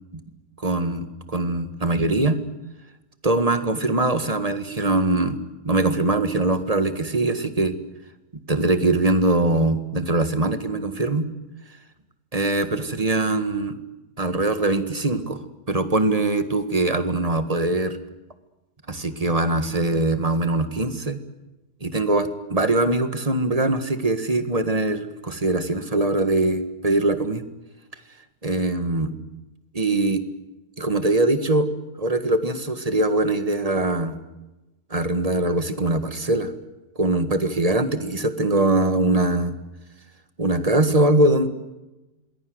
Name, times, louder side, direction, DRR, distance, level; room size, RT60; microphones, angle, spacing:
voice 1, 0.6-2.4 3.2-5.4 5.6-7.7 8.5-11.2 12.3-13.8 14.2-15.4 15.7-18.0 18.9-21.2 21.8-27.4 28.4-29.1 29.7-30.2 30.8-31.7 32.0-34.1 34.9-36.5 37.0-39.5 40.4-41.5, right 2 dB, 25° right, 9 dB, 1.7 m, -22 dB
27.0 x 21.0 x 8.0 m, 1.0 s
omnidirectional pair, 1.7 m